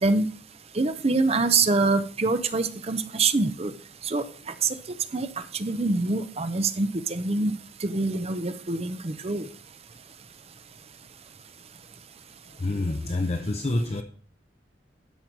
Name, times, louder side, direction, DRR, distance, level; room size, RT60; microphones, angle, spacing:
voice 1, 0.7-3.7 4.0-4.2 4.6-4.7 5.1-5.3 5.5-9.4, right 3 dB, 35° right, 11 dB, 0.7 m, -25 dB
voice 2, 12.6-14.0, left 2 dB, 40° left, 5 dB, 0.7 m, -27 dB
12.5 x 5.6 x 4.6 m, 0.43 s
head